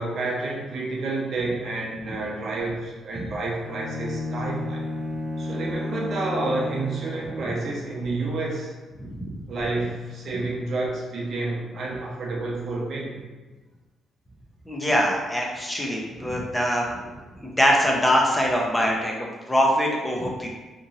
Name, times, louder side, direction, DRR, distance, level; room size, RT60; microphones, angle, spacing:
voice 1, 0.0-4.9 5.4-8.7 9.5-13.3 17.1-17.2, right 2 dB, 60° right, -3 dB, 0.7 m, -29 dB
Bowed string instrument, 3.6-7.7, left 2 dB, 75° left, 1.4 m, -32 dB
voice 2, 14.7-16.8 17.4-20.5, equal, 10° left, -1 dB, 0.6 m, -23 dB
2.9 x 2.6 x 2.7 m, 1.2 s
cardioid pair, 90°, 0 cm